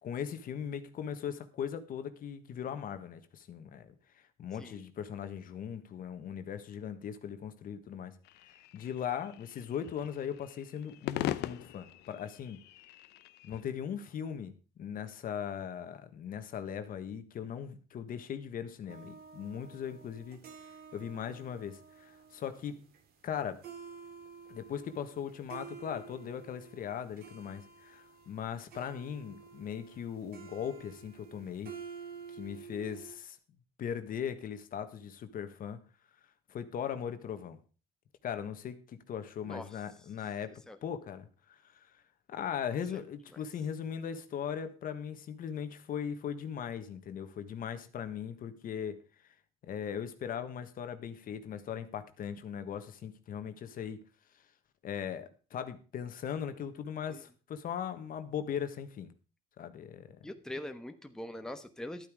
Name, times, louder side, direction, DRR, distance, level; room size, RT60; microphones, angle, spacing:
voice 1, 0.0-3.9 4.4-8.1 8.5-12.6 13.4-20.4 20.9-22.8 23.2-23.6 24.5-31.7 32.3-33.4 33.8-35.8 36.5-37.6 38.2-41.9 42.3-49.0 49.2-49.3 49.6-54.0 54.8-59.1 59.6-60.2, left 8 dB, 55° left, 1.4 m, -39 dB
sound 1, 8.3-13.6, left 15 dB, 80° left, 0.7 m, -41 dB
sound 2, 18.9-33.2, right 6 dB, 65° right, 2.2 m, -51 dB
voice 2, 39.4-39.8 40.7-40.8 43.3-43.4 57.1-57.2 60.2-62.1, left 1 dB, 5° left, 1.1 m, -42 dB
12.0 x 8.8 x 4.8 m
cardioid pair, 110°, 17 cm